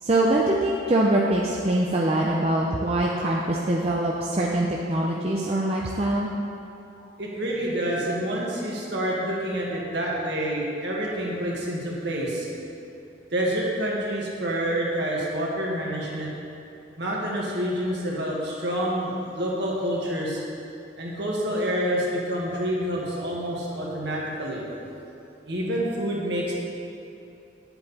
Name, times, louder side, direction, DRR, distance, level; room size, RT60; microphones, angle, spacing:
voice 1, 0.0-6.3, right 1 dB, 30° right, -3 dB, 0.6 m, -23 dB
voice 2, 7.2-12.5 13.3-16.3 17.0-20.4 21.0-24.6 25.5-26.5, equal, 60° right, -4 dB, 1.9 m, -28 dB
10.0 x 8.0 x 4.3 m, 2.8 s
head